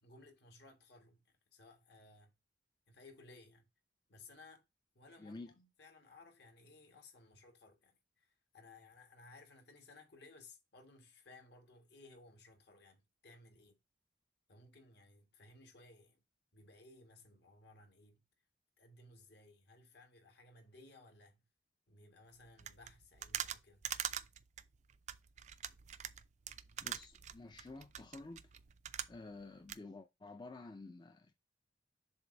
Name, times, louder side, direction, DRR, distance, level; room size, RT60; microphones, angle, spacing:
voice 1, 0.0-2.4 2.9-3.7 4.1-4.6 4.9-13.8 14.5-16.2 16.5-18.2 18.8-21.5 21.9-23.8, left 2 dB, 60° left, 1.4 m, -60 dB
voice 2, 5.2-5.5 26.8-28.4 29.1-31.3, left 3 dB, 25° left, 0.4 m, -51 dB
sound 1, 22.6-29.4 29.7-29.8, right 10 dB, 40° right, 0.4 m, -44 dB
7.1 x 2.6 x 5.1 m
head